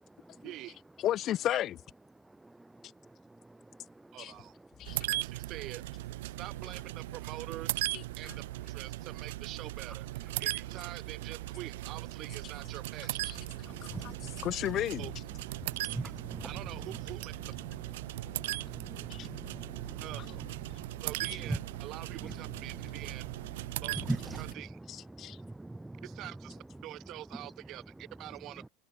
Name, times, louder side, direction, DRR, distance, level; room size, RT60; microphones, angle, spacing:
voice 1, 0.4-0.8 4.1-4.5 5.2-5.8 6.4-7.8 8.2-13.2 15.0-15.1 16.4-17.3 20.0-20.4 21.0-23.3 23.8-23.9 24.4-24.8 26.0-28.7, right 15 dB, 45° right, 2.0 m, -45 dB
voice 2, 1.0-1.8 4.2-4.3 4.8-5.1 7.9-8.4 13.2-13.4 13.8-15.1 19.1-19.3 24.9-25.4, left 12 dB, 40° left, 3.3 m, -34 dB
voice 3, 3.2-4.2 5.1-5.3 13.5-14.4 15.6-16.9 18.0-20.3 20.7-21.0 21.4-21.6 22.2-22.3 22.7-23.1 23.6-26.2 27.4-27.5, right 2 dB, 5° right, 0.3 m, -42 dB
sound 1, 4.9-24.5, right 18 dB, 80° right, 1.7 m, -38 dB
sound 2, 20.9-22.8, right 38 dB, 65° right, 7.8 m, -56 dB
supercardioid pair, 125°, 0 cm